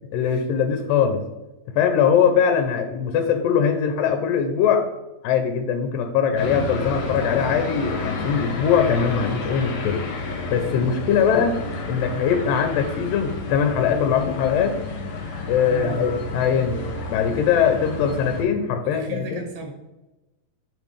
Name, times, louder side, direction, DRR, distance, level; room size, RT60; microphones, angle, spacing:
voice 1, 0.1-1.2 1.7-4.8 5.2-10.0 10.5-11.6 11.9-14.7 15.5-19.4, left 7 dB, 85° left, 6 dB, 2.3 m, -21 dB
sound 1, 6.4-18.4, left 3 dB, 70° left, 2.8 m, -31 dB
voice 2, 15.7-16.1 18.8-19.7, right 3 dB, 75° right, 2 dB, 3.1 m, -35 dB
7.5 x 5.2 x 3.3 m, 1.0 s
omnidirectional pair, 4.0 m